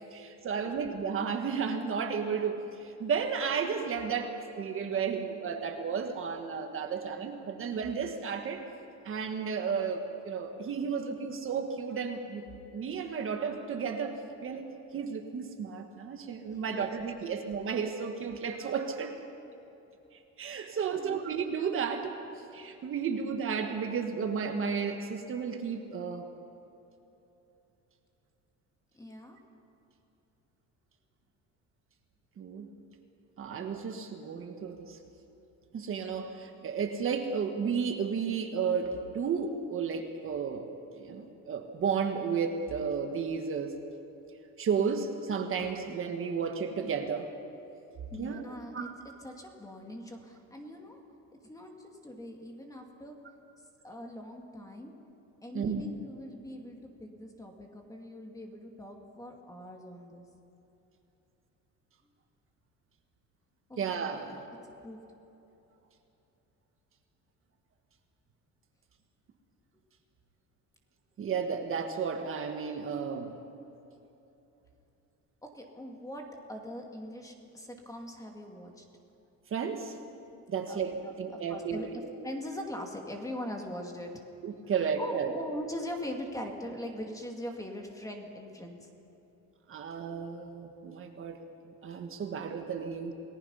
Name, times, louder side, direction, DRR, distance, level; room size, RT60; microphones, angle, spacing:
voice 1, 0.1-8.6 9.0-12.4 12.7-19.2 20.4-26.3 32.4-32.7 33.4-35.0 35.7-43.7 44.6-47.3 48.2-48.9 55.5-55.8 63.8-64.5 71.2-73.3 79.5-80.0 80.5-82.1 84.4-85.4 89.7-91.4 91.6-93.1, right 6 dB, 45° right, 4 dB, 1.5 m, -33 dB
voice 2, 16.5-16.9 20.7-21.2 28.9-29.4 47.9-48.9 49.2-51.0 51.4-53.2 53.8-54.9 55.4-60.2 63.7-63.9 64.5-65.0 75.4-78.8 80.7-80.8 81.0-84.1 85.0-88.9, equal, 10° left, 2 dB, 2.3 m, -42 dB
28.5 x 19.5 x 5.6 m, 2.9 s
cardioid pair, 155°, 31 cm